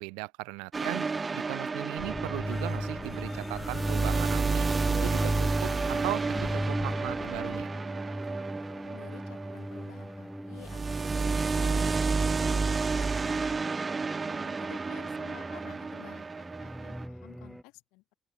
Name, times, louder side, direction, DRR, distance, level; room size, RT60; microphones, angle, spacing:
voice 1, 0.0-4.6 5.0-7.7, right 33 dB, 90° right, 1.2 m, -38 dB
sound 1, 0.7-10.2 10.6-17.0, right 4 dB, 35° right, 1.8 m, -31 dB
sound 2, 2.0-7.7, left 4 dB, 40° left, 1.9 m, -43 dB
sound 3, 2.0-17.6, equal, ahead, 2.2 m, -38 dB
voice 2, 8.8-13.6 14.2-18.2, left 24 dB, 85° left, 4.0 m, -52 dB
open air
hypercardioid pair, 55°, 0 cm